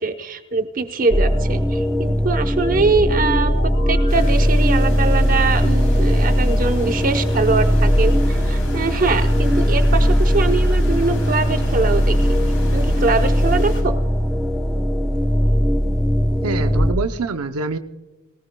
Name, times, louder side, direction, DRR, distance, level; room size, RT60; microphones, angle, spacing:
voice 1, 0.0-12.4 12.7-14.0, right 4 dB, 40° right, 7 dB, 0.9 m, -22 dB
sound 1, 1.1-16.9, equal, 5° left, 0.8 m, -18 dB
sound 2, 2.6-5.2, equal, 50° left, 4.0 m, -31 dB
sound 3, 4.1-13.8, left 1 dB, 85° left, 5.5 m, -32 dB
voice 2, 16.4-17.8, right 4 dB, 85° right, 8 dB, 0.7 m, -25 dB
21.0 x 18.5 x 2.3 m, 1.1 s
head